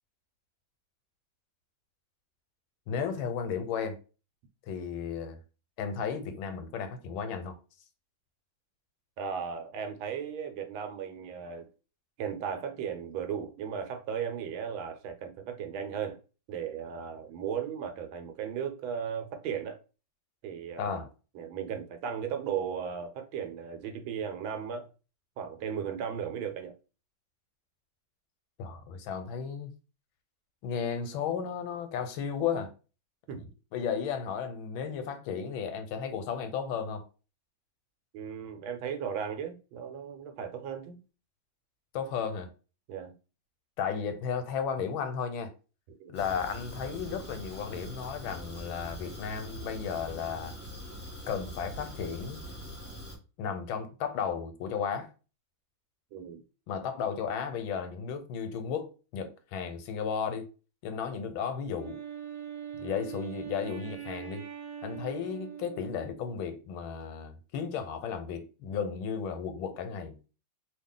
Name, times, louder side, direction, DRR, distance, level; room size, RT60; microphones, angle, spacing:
voice 1, 2.9-4.0 4.7-5.4 5.8-7.5 20.8-21.1 28.6-29.7 30.6-32.7 33.7-37.0 41.9-42.5 43.8-45.5 46.1-50.6 51.3-52.4 53.4-55.1 56.7-60.5 60.8-62.0 62.8-64.4 64.8-70.2, left 7 dB, 85° left, 1.4 m, -34 dB
voice 2, 9.2-11.7 12.2-16.2 16.5-19.8 20.4-21.1 21.3-24.9 25.4-26.8 33.3-33.5 38.1-41.0 42.9-43.1 46.0-46.1 56.1-56.4, right 7 dB, 85° right, 1.5 m, -36 dB
Fire, 46.1-53.1, equal, 10° left, 0.7 m, -43 dB
Wind instrument woodwind instrument, 61.7-66.4, right 9 dB, 60° right, 1.0 m, -42 dB
3.2 x 2.4 x 3.7 m
omnidirectional pair, 2.2 m